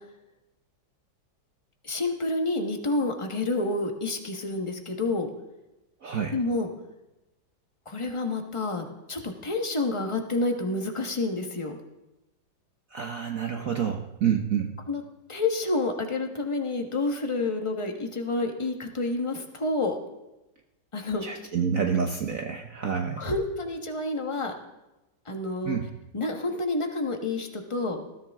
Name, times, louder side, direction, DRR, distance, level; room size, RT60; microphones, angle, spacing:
voice 1, 1.8-5.3 6.3-6.7 7.9-11.8 14.9-15.0 15.3-20.0 20.9-21.2 23.2-24.5 25.3-25.8 26.1-28.0, left 2 dB, 20° left, 3 dB, 1.2 m, -29 dB
voice 2, 6.0-6.3 12.9-14.7 21.2-23.4 25.6-25.9, right 7 dB, 50° right, 3 dB, 1.2 m, -28 dB
19.5 x 13.5 x 3.6 m, 0.99 s
omnidirectional pair, 2.1 m